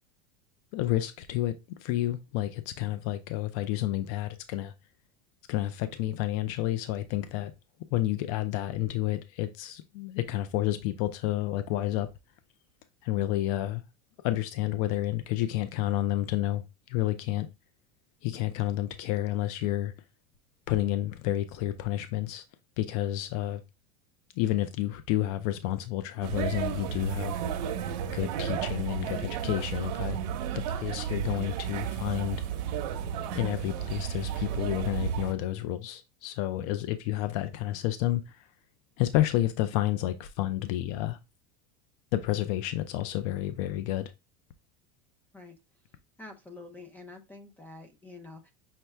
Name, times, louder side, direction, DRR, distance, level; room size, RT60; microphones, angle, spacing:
voice 1, 0.7-4.7 5.5-7.5 7.9-12.1 13.0-13.8 14.2-17.5 18.2-19.9 20.7-22.4 22.8-23.6 24.4-27.4 28.1-30.2 30.7-32.4 33.3-38.5 39.0-41.2 42.1-44.1, left 14 dB, 60° left, 0.5 m, -30 dB
sound 1, 26.2-35.3, right 8 dB, 85° right, 0.8 m, -33 dB
voice 2, 46.2-48.5, left 2 dB, 10° left, 0.5 m, -47 dB
5.8 x 2.1 x 3.1 m
supercardioid pair, 150°, 21 cm